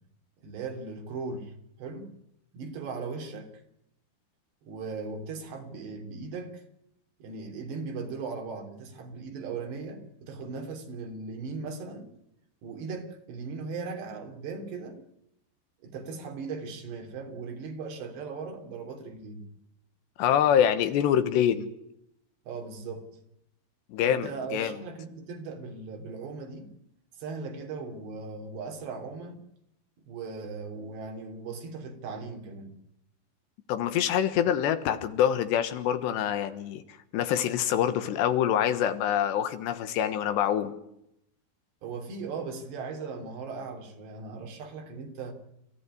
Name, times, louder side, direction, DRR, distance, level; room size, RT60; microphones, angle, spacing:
voice 1, 0.4-1.5 1.8-2.1 2.5-3.5 4.6-6.6 7.2-12.1 12.6-15.0 15.8-19.5 22.5-23.1 24.0-26.7 27.2-29.4 30.1-32.7 41.8-45.3, right 4 dB, 80° right, 3 dB, 5.4 m, -38 dB
voice 2, 20.2-21.7 23.9-24.7 33.7-36.8 37.1-40.7, left 10 dB, 90° left, 9 dB, 3.6 m, -25 dB
29.5 x 14.5 x 9.9 m, 0.80 s
omnidirectional pair, 4.9 m